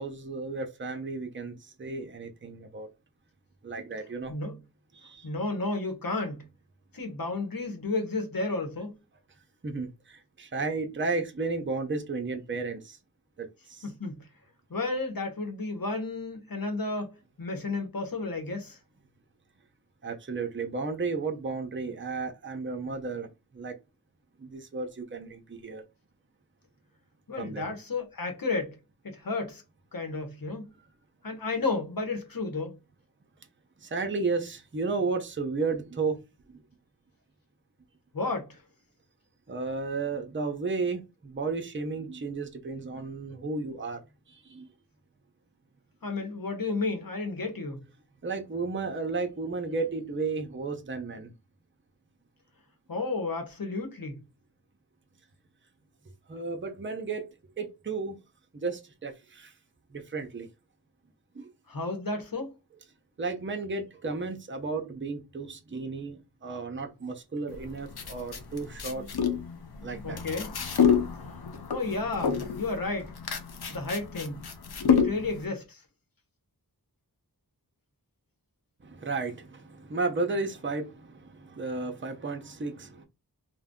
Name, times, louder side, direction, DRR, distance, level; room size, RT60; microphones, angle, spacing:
voice 1, 0.0-2.9 3.6-4.3 4.9-5.3 9.6-13.0 13.4-13.9 20.0-23.7 24.4-25.8 27.4-27.7 33.8-36.2 36.5-36.6 39.5-44.0 44.3-44.7 48.2-51.3 56.3-57.3 57.6-58.2 58.5-59.5 59.9-60.5 61.3-61.5 63.2-69.0 69.8-70.2 78.8-83.1, right 4 dB, 30° right, 0.6 m, -33 dB
voice 2, 4.3-4.6 5.2-6.4 6.9-8.9 13.8-14.2 14.7-18.8 27.3-28.8 29.0-29.6 29.9-30.7 31.2-32.8 38.1-38.6 46.0-47.8 52.9-54.2 61.7-62.5 70.0-70.5 71.7-73.1 73.7-74.4 74.9-75.8, left 3 dB, 65° left, 1.0 m, -32 dB
sound 1, 67.5-75.5, left 7 dB, 85° left, 0.6 m, -28 dB
2.6 x 2.1 x 3.5 m
wide cardioid pair, 55°, 37 cm